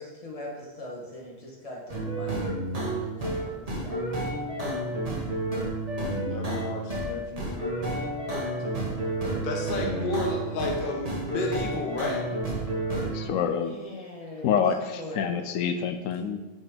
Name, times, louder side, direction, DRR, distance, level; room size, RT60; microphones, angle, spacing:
voice 1, 0.0-4.1 13.6-14.6 14.9-15.4, left 1 dB, 30° left, -2 dB, 1.6 m, -41 dB
sound 1, 1.9-13.3, right 1 dB, 30° right, 1.5 m, -30 dB
voice 2, 6.2-7.7 9.4-12.3, left 2 dB, 45° left, 1 dB, 1.1 m, -32 dB
voice 3, 13.1-13.8 14.4-16.4, left 7 dB, 90° left, 7 dB, 1.0 m, -27 dB
5.8 x 5.2 x 5.2 m, 1.2 s
omnidirectional pair, 1.3 m